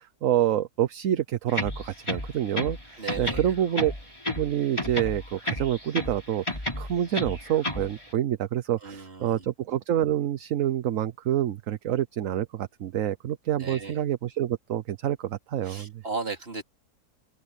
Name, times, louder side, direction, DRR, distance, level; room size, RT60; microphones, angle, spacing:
voice 1, 0.0-3.9 4.3-16.0, right 11 dB, 65° right, 1.1 m, -27 dB
sound 1, 1.5-2.8 3.1-4.5 4.8-6.2 6.5-7.9, left 1 dB, 20° left, 4.2 m, -31 dB
voice 2, 3.0-3.4 8.8-9.4 13.6-13.9 15.6-16.6, right 4 dB, 40° right, 3.1 m, -35 dB
open air
omnidirectional pair, 1.6 m